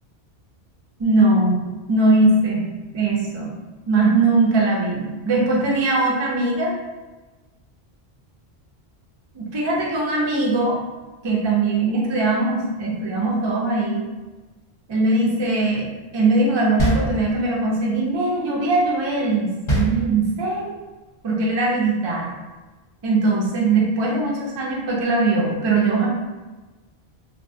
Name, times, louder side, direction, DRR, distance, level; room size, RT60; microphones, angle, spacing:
voice 1, 1.0-1.6 1.9-2.7 2.9-3.5 3.9-6.7 9.3-10.8 11.2-14.0 14.9-15.9 16.1-20.7 21.2-22.3 23.0-26.1, right 2 dB, 40° right, -4 dB, 0.4 m, -20 dB
sound 1, 16.8-17.7 19.7-20.6, right 1 dB, 35° left, 0.6 m, -23 dB
2.9 x 2.2 x 2.6 m, 1.2 s
omnidirectional pair, 1.1 m